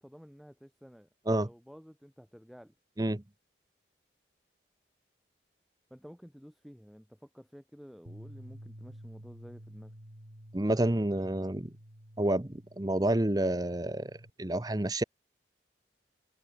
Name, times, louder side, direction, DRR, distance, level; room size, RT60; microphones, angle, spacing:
voice 1, 0.0-1.1 1.4-2.7 5.9-10.0, equal, ahead, 5.1 m, -52 dB
Bass guitar, 8.1-14.3, equal, 85° right, 5.2 m, -51 dB
voice 2, 10.5-11.7 12.2-14.1 14.4-15.0, right 1 dB, 20° right, 0.9 m, -29 dB
head